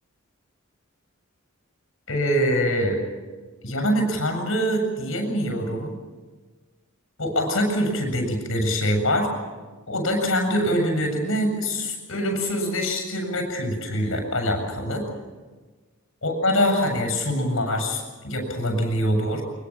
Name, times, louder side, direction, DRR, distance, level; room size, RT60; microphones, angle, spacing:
voice 1, 2.1-3.0 3.6-5.9 7.2-9.3 9.9-15.0 16.2-19.4, equal, 70° left, 4 dB, 7.4 m, -24 dB
24.0 x 22.0 x 7.4 m, 1.3 s
head